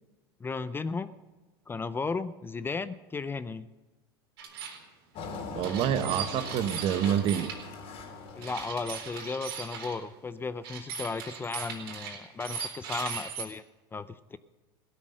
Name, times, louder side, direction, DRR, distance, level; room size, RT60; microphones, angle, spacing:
voice 1, 0.4-1.1 1.7-3.7 8.3-13.6 13.9-14.4, left 4 dB, 15° left, 15 dB, 0.6 m, -35 dB
sound 1, 4.4-4.8 5.6-7.6 8.4-10.0 10.6-13.4, right 7 dB, 80° right, 4.1 m, -38 dB
Engine, 5.1-9.6, left 4 dB, 50° left, 3.4 m, -42 dB
voice 2, 5.5-7.5, right 9 dB, 45° right, 11 dB, 1.1 m, -27 dB
17.0 x 13.0 x 6.4 m, 1.2 s
hypercardioid pair, 100°, 13 cm